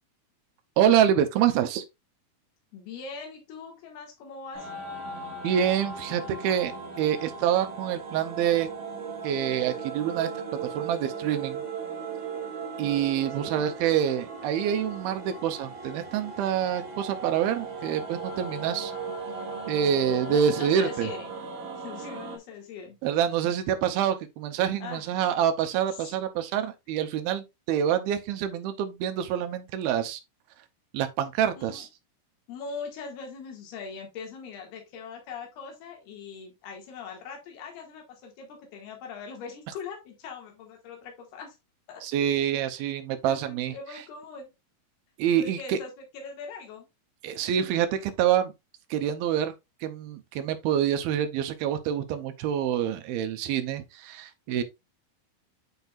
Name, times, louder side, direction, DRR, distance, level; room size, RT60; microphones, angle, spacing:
voice 1, 0.8-1.8 5.4-6.7 7.0-8.7 9.2-10.3 10.7-11.6 12.8-18.9 19.7-21.1 23.0-30.2 30.9-31.9 42.0-43.7 45.2-45.8 47.2-48.5 48.9-49.5 49.8-54.6, right 9 dB, 80° right, 2.6 m, -26 dB
voice 2, 2.7-4.7 12.8-12.9 13.4-13.7 20.2-21.3 21.8-23.0 24.8-25.0 25.9-26.1 31.6-31.9 32.5-41.6 41.9-42.0 43.3-44.5 45.4-46.9, left 5 dB, 80° left, 3.8 m, -41 dB
sound 1, 4.5-22.4, right 4 dB, 60° right, 3.1 m, -37 dB
9.8 x 4.6 x 2.4 m
omnidirectional pair, 4.5 m